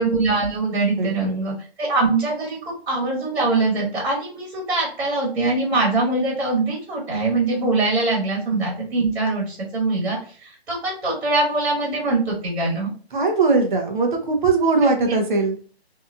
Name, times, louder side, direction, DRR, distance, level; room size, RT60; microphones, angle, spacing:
voice 1, 0.0-12.9 14.8-15.2, right 3 dB, 70° right, -3 dB, 1.4 m, -23 dB
voice 2, 1.0-1.5 13.1-15.6, right 3 dB, 50° right, 3 dB, 0.7 m, -20 dB
2.7 x 2.3 x 2.5 m, 0.41 s
hypercardioid pair, 175°, 32 cm